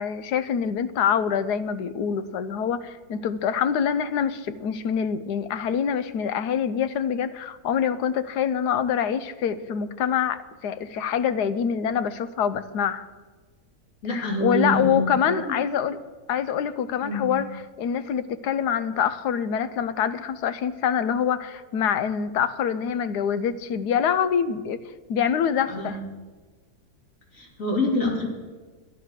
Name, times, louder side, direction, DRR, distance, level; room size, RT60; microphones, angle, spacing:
voice 1, 0.0-13.1 14.1-16.0 16.3-24.8 25.1-26.0, left 8 dB, 90° left, 13 dB, 1.3 m, -25 dB
voice 2, 14.0-15.6 17.0-17.3 25.7-25.9 27.3-28.3, left 1 dB, 55° left, -1 dB, 3.2 m, -26 dB
12.5 x 10.5 x 6.5 m, 1.3 s
omnidirectional pair, 1.7 m